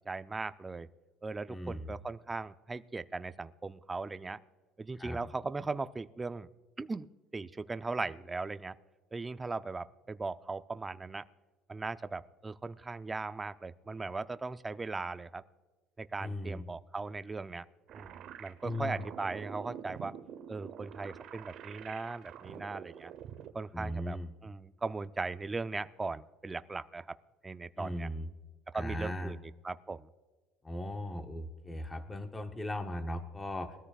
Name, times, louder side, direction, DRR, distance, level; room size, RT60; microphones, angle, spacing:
voice 1, 0.1-0.9 1.2-4.4 4.8-6.5 6.8-8.8 9.1-11.2 11.7-15.4 16.0-17.7 17.9-20.1 20.5-23.1 23.5-24.2 24.4-27.2 27.4-28.1 28.7-29.4 29.6-30.1, right 3 dB, 15° right, 13 dB, 0.4 m, -38 dB
voice 2, 1.5-1.9 4.9-5.2 16.2-16.7 18.6-19.1 23.7-24.3 27.8-28.3 28.7-29.4 30.6-33.8, left 1 dB, 15° left, 6 dB, 0.8 m, -38 dB
sound 1, 17.9-23.5, right 9 dB, 50° right, 1.0 m, -47 dB
22.0 x 13.5 x 2.4 m, 1.3 s
cardioid pair, 145°, 0 cm